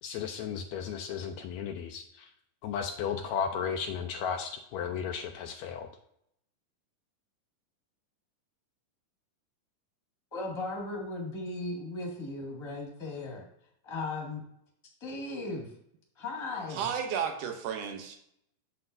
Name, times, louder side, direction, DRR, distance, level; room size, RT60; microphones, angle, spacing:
voice 1, 0.0-2.3 2.6-5.9, left 7 dB, 90° left, 4 dB, 1.5 m, -34 dB
voice 2, 10.3-13.4 13.8-14.4 15.0-15.7 16.1-16.9, left 2 dB, 15° left, -1 dB, 1.1 m, -37 dB
voice 3, 16.7-18.2, right 7 dB, 75° right, 4 dB, 2.2 m, -33 dB
7.8 x 7.7 x 2.6 m, 0.74 s
omnidirectional pair, 3.8 m